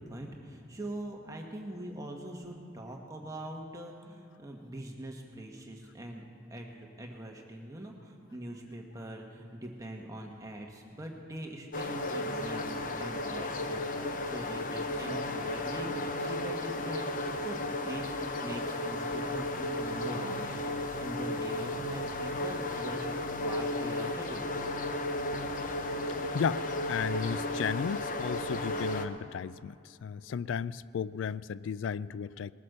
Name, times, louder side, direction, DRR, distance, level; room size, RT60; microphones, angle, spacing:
voice 1, 0.0-6.2 6.5-18.2 18.4-23.1 23.4-24.5 25.3-25.4, right 1 dB, 15° right, 1 dB, 1.2 m, -43 dB
sound 1, 11.7-29.1, left 1 dB, 40° left, 0.7 m, -34 dB
voice 2, 26.9-29.7 30.0-32.5, left 7 dB, 80° left, 18 dB, 0.3 m, -34 dB
20.0 x 8.5 x 6.7 m, 2.5 s
head